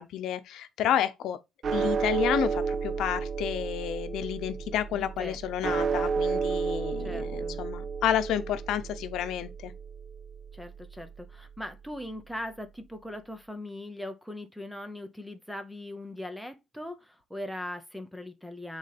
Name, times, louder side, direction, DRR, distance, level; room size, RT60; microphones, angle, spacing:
voice 1, 0.0-1.4 1.7-9.7, left 10 dB, 80° left, 0.7 m, -30 dB
sound 1, 1.6-12.1, right 5 dB, 40° right, 0.4 m, -32 dB
voice 2, 4.9-5.4 7.0-7.6 10.5-18.8, left 1 dB, ahead, 0.7 m, -40 dB
9.0 x 3.9 x 3.4 m
cardioid pair, 160°, 0 cm